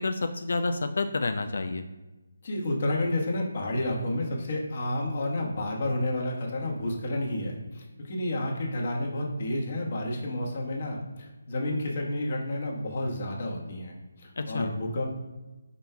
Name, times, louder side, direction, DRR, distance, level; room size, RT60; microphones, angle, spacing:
voice 1, 0.0-1.8 14.4-14.7, left 3 dB, 70° left, 7 dB, 0.3 m, -29 dB
voice 2, 2.4-15.0, left 1 dB, 45° left, -1 dB, 1.2 m, -30 dB
5.2 x 4.3 x 2.2 m, 1.1 s
figure-of-eight pair, 160°, 0 cm